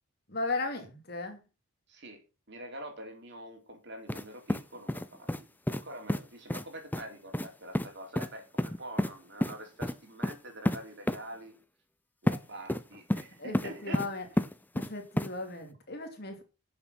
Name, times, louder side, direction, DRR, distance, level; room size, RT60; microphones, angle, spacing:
voice 1, 0.3-1.4 13.4-14.3 14.7-16.4, left 3 dB, 45° left, 5 dB, 2.7 m, -36 dB
voice 2, 1.9-2.2 2.5-5.3 5.7-11.6 12.2-14.0, right 1 dB, 50° right, 3 dB, 3.7 m, -45 dB
sound 1, 4.1-4.2 4.5-5.4 5.7-5.8 6.1-6.2 6.5-6.6 6.9-7.0 7.3-7.5 7.7-7.9 8.2-8.3 8.6-9.1 9.4-9.5 9.8-9.9 10.2-10.4 10.7-10.8 11.1-11.2 12.3-12.4 12.7-13.3 13.5-14.1 14.4-14.9 15.2-15.3, left 1 dB, 10° left, 0.5 m, -29 dB
11.0 x 7.2 x 6.1 m, 0.31 s
head